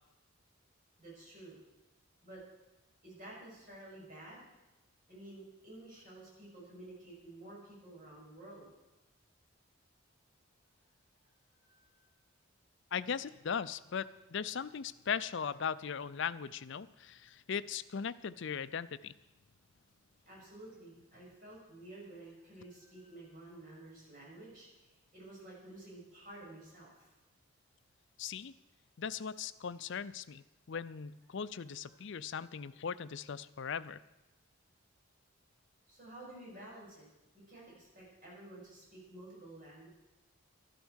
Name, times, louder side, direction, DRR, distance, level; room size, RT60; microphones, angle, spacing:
voice 1, 1.0-1.6 2.2-2.4 3.0-4.4 5.1-8.7 11.6-12.1 20.2-27.1 35.9-37.1 37.3-39.9, right 1 dB, 40° right, -5 dB, 6.5 m, -52 dB
voice 2, 12.9-19.1 28.2-28.5 29.0-34.0, left 7 dB, 55° left, 15 dB, 0.5 m, -39 dB
12.5 x 12.0 x 6.3 m, 1.0 s
head